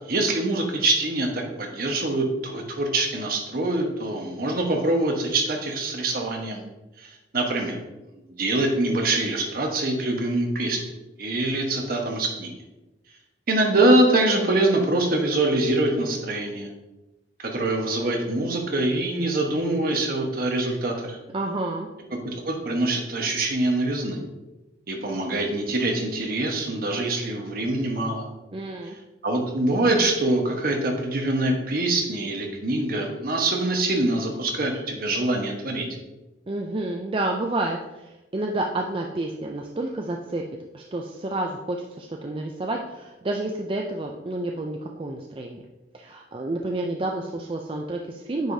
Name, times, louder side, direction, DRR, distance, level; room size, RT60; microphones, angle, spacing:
voice 1, 0.1-6.6 7.0-7.8 8.4-10.8 11.2-12.6 13.5-16.7 17.4-21.2 22.2-24.2 24.9-28.3 29.2-35.9, right 2 dB, 55° right, 2 dB, 1.2 m, -24 dB
voice 2, 21.3-21.9 28.5-29.0 36.5-40.4 40.7-45.6 45.9-48.5, right 2 dB, 30° right, 2 dB, 0.4 m, -29 dB
9.1 x 4.8 x 2.7 m, 1.0 s
head